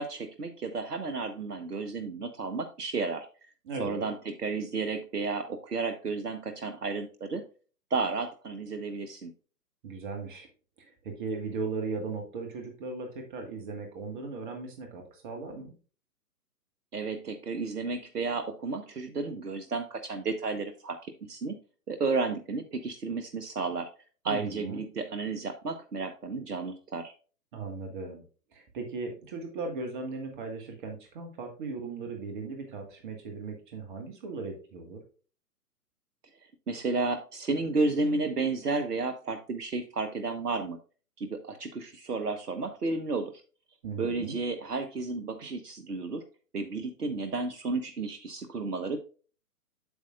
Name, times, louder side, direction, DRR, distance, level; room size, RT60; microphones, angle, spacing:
voice 1, 0.0-3.3 3.8-7.4 7.9-9.3 16.9-21.6 21.9-23.9 24.2-27.1 36.7-40.8 41.2-43.3 44.0-46.2 46.5-49.0, right 3 dB, 75° right, 9 dB, 0.9 m, -32 dB
voice 2, 3.6-4.1 9.8-10.5 10.8-15.7 24.2-24.8 27.5-28.2 28.5-35.0 43.8-44.4, right 4 dB, 30° right, 3 dB, 1.6 m, -37 dB
8.2 x 7.4 x 2.4 m, 0.38 s
figure-of-eight pair, 125°, 47 cm